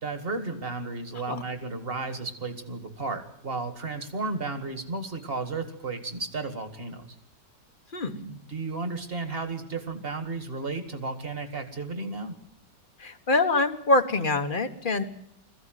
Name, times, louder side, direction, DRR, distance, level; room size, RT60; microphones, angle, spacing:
voice 1, 0.0-7.2 8.1-12.4, right 3 dB, 35° right, 8 dB, 2.2 m, -33 dB
voice 2, 13.0-15.0, left 2 dB, 30° left, 8 dB, 1.3 m, -24 dB
21.5 x 15.0 x 9.3 m, 0.72 s
omnidirectional pair, 1.9 m